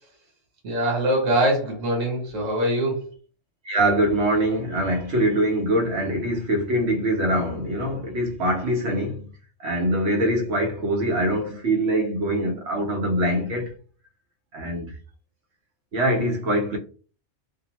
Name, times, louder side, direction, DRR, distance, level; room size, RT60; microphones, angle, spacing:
voice 1, 0.6-3.1, right 1 dB, 85° right, 1.3 m, -23 dB
voice 2, 3.6-9.3 9.6-13.7 14.5-14.9 15.9-16.8, right 1 dB, 60° right, 1.0 m, -23 dB
2.7 x 2.0 x 2.9 m
omnidirectional pair, 1.3 m